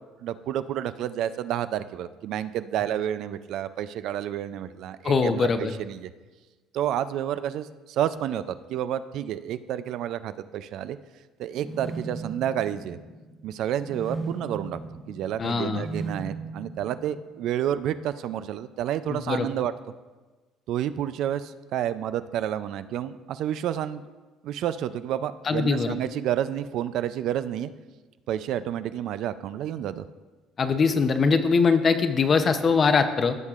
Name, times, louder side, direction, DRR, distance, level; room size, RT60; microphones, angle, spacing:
voice 1, 0.2-6.1 6.7-11.0 11.4-13.0 13.4-14.8 15.1-19.7 20.7-24.0 24.4-27.7 28.3-30.1, right 11 dB, 65° right, 13 dB, 0.3 m, -30 dB
voice 2, 5.0-5.7 15.4-15.8 19.1-19.5 25.5-26.0 30.6-33.4, left 5 dB, 35° left, 9 dB, 0.6 m, -22 dB
sound 1, 11.5-17.6, right 3 dB, 10° right, 1.2 m, -38 dB
16.0 x 6.4 x 2.4 m, 1.3 s
cardioid pair, 125°, 0 cm